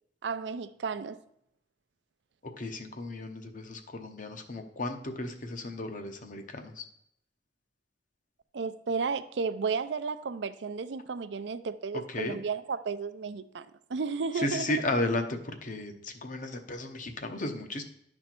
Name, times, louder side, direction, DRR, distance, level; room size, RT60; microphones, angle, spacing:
voice 1, 0.2-1.2 8.5-14.9, right 5 dB, 70° right, 13 dB, 0.5 m, -33 dB
voice 2, 2.4-6.8 12.1-12.4 14.4-17.8, left 2 dB, 45° left, 6 dB, 0.9 m, -34 dB
11.0 x 4.4 x 4.4 m, 0.76 s
head